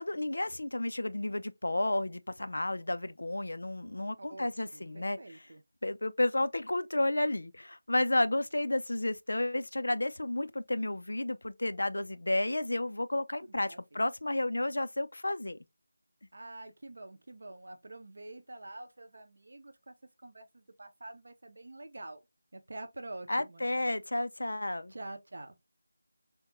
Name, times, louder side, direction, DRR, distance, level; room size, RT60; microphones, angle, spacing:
voice 1, 0.0-5.5 5.8-15.6 23.3-24.9, left 1 dB, 80° left, 0.4 m, -32 dB
voice 2, 4.2-5.6 13.7-14.0 16.3-19.9 20.2-22.2 22.5-23.7 24.9-25.5, right 2 dB, 45° right, 0.6 m, -47 dB
3.5 x 2.2 x 2.9 m
figure-of-eight pair, 180°, 0 cm